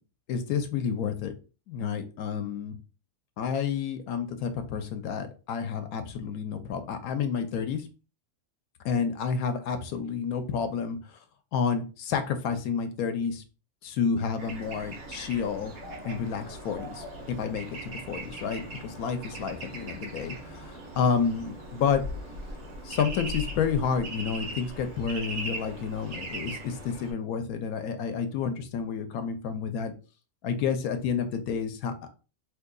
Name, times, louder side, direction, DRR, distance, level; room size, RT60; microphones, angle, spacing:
voice 1, 0.3-1.3 1.7-2.8 3.4-7.8 8.8-11.0 11.5-13.4 13.8-15.7 16.0-22.0 22.8-29.9 30.4-31.9, left 6 dB, 80° left, 8 dB, 1.1 m, -30 dB
Bird / Traffic noise roadway noise, 14.4-27.1, right 1 dB, 75° right, 1.4 m, -39 dB
3.7 x 3.1 x 2.2 m, 0.34 s
omnidirectional pair, 1.5 m